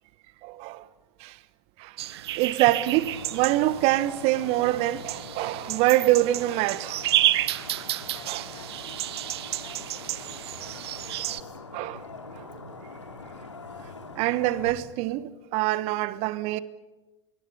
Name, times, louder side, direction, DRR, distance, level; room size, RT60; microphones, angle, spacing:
voice 1, 0.4-0.8 1.2-1.4 1.8-2.0 2.3-7.0 8.3-8.4 11.7-12.0 12.3-12.6 14.1-16.6, right 16 dB, 45° right, 1.3 m, -25 dB
sound 1, 2.0-11.4, right 14 dB, 60° right, 1.2 m, -31 dB
sound 2, 2.8-14.7, left 3 dB, 85° left, 3.0 m, -43 dB
voice 2, 8.1-9.0 9.6-11.4, left 6 dB, 30° left, 4.1 m, -51 dB
25.0 x 24.0 x 8.3 m
figure-of-eight pair, 90°, 15 cm